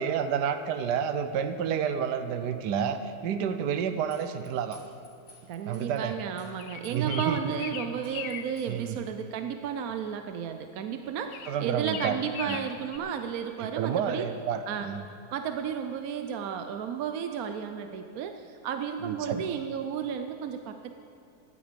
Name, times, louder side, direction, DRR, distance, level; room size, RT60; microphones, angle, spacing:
voice 1, 0.0-4.8 5.7-6.1 6.9-7.4 8.7-9.0 11.5-12.6 13.6-15.0 19.0-19.4, right 7 dB, 90° right, 9 dB, 1.3 m, -30 dB
sound 1, 4.1-6.0 6.4-7.3 7.6-7.7 8.0-8.8, left 3 dB, 40° left, 2.9 m, -55 dB
voice 2, 5.4-14.3 14.7-14.9 15.3-20.9, right 8 dB, 70° right, 7 dB, 1.0 m, -33 dB
sound 2, 6.6-8.5 11.3-13.0, left 9 dB, 80° left, 1.3 m, -39 dB
15.5 x 11.0 x 5.2 m, 2.4 s
omnidirectional pair, 1.7 m